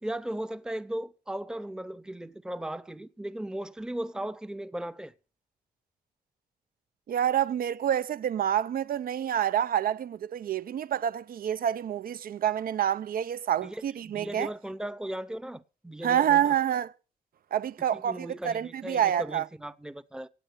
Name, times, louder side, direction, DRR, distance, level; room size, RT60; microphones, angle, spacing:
voice 1, 0.0-5.1 13.6-16.6 17.9-20.3, right 1 dB, 5° right, 0.7 m, -37 dB
voice 2, 7.1-14.5 16.0-16.9 17.5-19.5, right 10 dB, 70° right, 0.7 m, -27 dB
17.5 x 9.0 x 6.5 m
cardioid pair, 115°, 16 cm